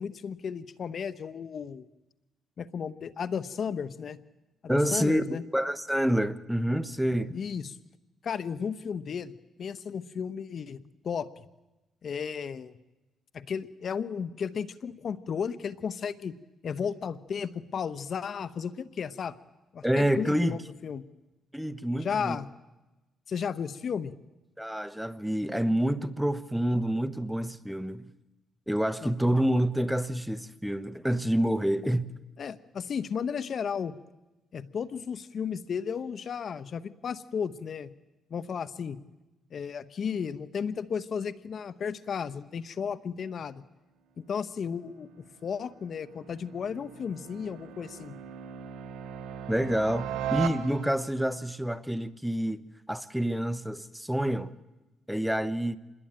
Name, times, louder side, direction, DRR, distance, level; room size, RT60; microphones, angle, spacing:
voice 1, 0.0-1.9 2.6-4.2 4.6-5.4 7.3-7.8 8.2-9.3 9.6-11.4 12.0-12.8 13.3-16.4 16.6-19.4 19.7-21.0 22.0-22.5 23.3-24.1 29.0-29.4 32.4-33.9 34.5-37.9 38.3-39.0 39.5-43.6 44.2-48.2, left 6 dB, 55° left, 1.0 m, -34 dB
voice 2, 4.7-7.4 19.8-20.6 21.5-22.4 24.6-28.1 28.7-32.1 49.5-52.6 52.9-54.5 55.1-55.8, right 1 dB, 5° right, 1.2 m, -28 dB
sound 1, 44.8-51.2, right 9 dB, 80° right, 2.1 m, -38 dB
27.0 x 21.0 x 9.0 m
cardioid pair, 90°, 0 cm